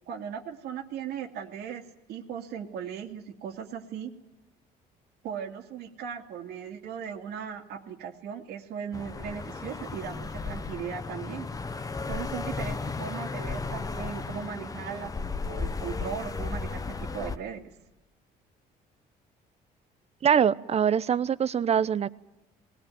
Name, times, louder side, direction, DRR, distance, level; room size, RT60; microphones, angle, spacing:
voice 1, 0.1-4.1 5.2-11.5 12.1-15.1 15.5-17.6, right 8 dB, 75° right, 4 dB, 2.4 m, -38 dB
sound 1, 8.9-17.4, left 4 dB, 20° left, 1.0 m, -35 dB
voice 2, 20.2-22.1, right 8 dB, 40° right, 17 dB, 0.8 m, -23 dB
20.0 x 18.5 x 9.3 m, 0.97 s
cardioid pair, 110°, 17 cm